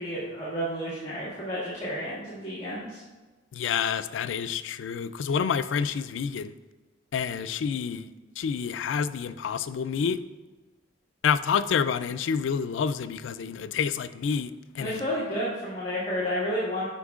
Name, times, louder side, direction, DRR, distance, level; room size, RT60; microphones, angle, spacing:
voice 1, 0.0-3.0 14.8-16.9, equal, 35° left, -10 dB, 1.7 m, -31 dB
voice 2, 3.5-6.5 7.1-8.1 8.4-10.2 11.2-14.5 14.8-15.0, left 6 dB, 90° left, 13 dB, 0.3 m, -28 dB
9.8 x 5.6 x 2.4 m, 1.3 s
head